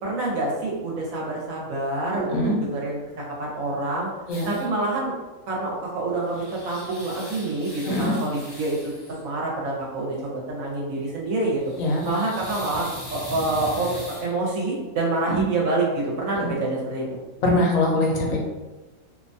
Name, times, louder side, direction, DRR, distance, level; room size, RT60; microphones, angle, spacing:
voice 1, 0.0-2.4 2.7-3.0 3.4-4.1 4.5-5.1 5.5-8.9 9.2-11.6 12.0-17.0, right 2 dB, 75° right, -3 dB, 1.1 m, -27 dB
voice 2, 2.1-2.5 4.3-4.5 7.8-8.1 11.8-12.0 15.3-15.4 17.4-18.4, left 1 dB, 75° left, -1 dB, 1.0 m, -22 dB
sound 1, 4.3-4.7 5.9-9.2 11.5-14.3, equal, 25° left, 0.7 m, -40 dB
2.7 x 2.2 x 2.6 m, 1.2 s
omnidirectional pair, 1.5 m